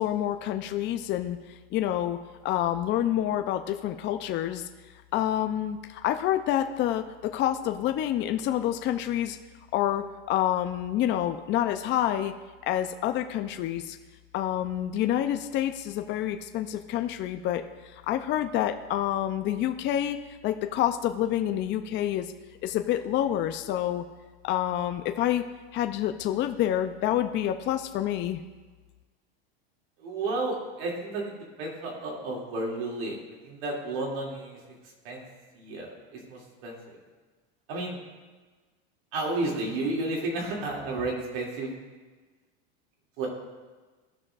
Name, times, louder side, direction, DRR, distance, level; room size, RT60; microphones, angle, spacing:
voice 1, 0.0-4.6 5.1-9.4 9.7-12.3 12.7-14.0 14.3-17.6 17.9-20.2 20.4-22.3 22.6-24.0 24.4-25.5 25.7-28.4, left 11 dB, 35° left, 7 dB, 0.5 m, -28 dB
voice 2, 30.0-33.2 33.4-34.6 35.0-35.3 35.5-37.0 37.7-38.0 39.1-41.7 43.2-43.3, right 2 dB, 70° right, -2 dB, 2.7 m, -32 dB
16.5 x 6.3 x 2.5 m, 1.3 s
supercardioid pair, 120°, 31 cm